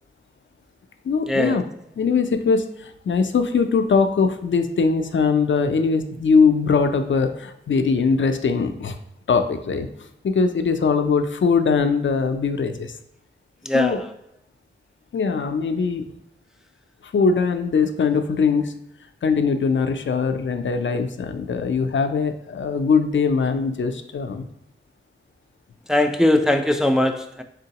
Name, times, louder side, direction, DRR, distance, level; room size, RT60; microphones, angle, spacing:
voice 1, 1.0-1.6 2.0-9.0 9.3-9.9 10.2-12.9 13.7-14.0 15.1-16.1 17.0-18.7 19.2-24.5, left 5 dB, 65° left, 8 dB, 0.4 m, -21 dB
voice 2, 25.9-27.4, left 1 dB, 5° right, 6 dB, 0.3 m, -20 dB
3.7 x 3.7 x 2.8 m, 0.76 s
wide cardioid pair, 55°, 21 cm